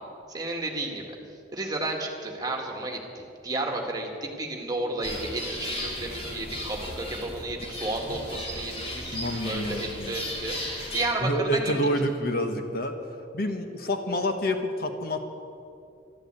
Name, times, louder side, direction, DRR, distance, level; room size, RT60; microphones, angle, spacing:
voice 1, 0.3-1.1 1.5-3.0 3.4-11.9, right 2 dB, 20° right, 2 dB, 1.9 m, -32 dB
sound 1, 5.0-11.1, left 1 dB, 30° left, 2.6 m, -35 dB
voice 2, 9.1-10.1 11.2-13.0 13.3-15.3, equal, 55° left, 6 dB, 1.2 m, -28 dB
12.5 x 12.5 x 8.2 m, 2.5 s
head